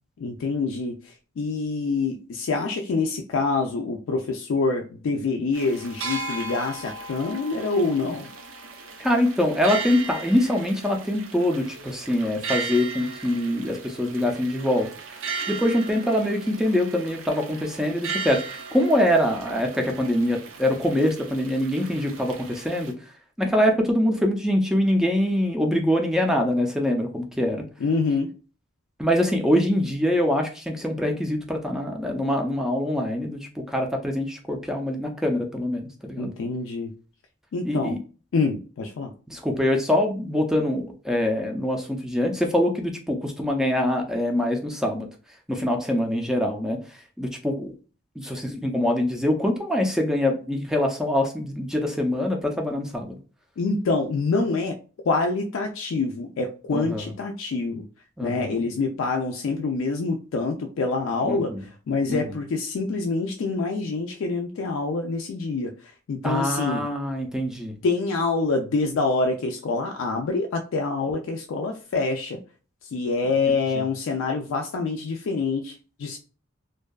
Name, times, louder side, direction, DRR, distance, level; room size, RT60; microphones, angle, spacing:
voice 1, 0.2-8.3 27.8-28.3 36.2-36.9 37.5-38.0 38.3-39.1 53.6-54.8 55.1-57.9 58.2-65.7 66.1-66.9 67.8-72.4 72.8-76.2, left 3 dB, 80° left, 0.4 m, -26 dB
sound 1, 5.5-22.9, right 4 dB, 80° right, 0.6 m, -36 dB
voice 2, 9.0-14.9 15.5-22.9 23.4-27.7 29.0-36.3 37.6-38.0 39.3-45.1 45.5-46.8 47.2-47.7 48.2-53.2 56.7-57.0 58.2-58.6 61.3-61.6 62.1-62.2 66.2-67.8, left 1 dB, 5° right, 0.4 m, -24 dB
2.6 x 2.2 x 2.2 m
head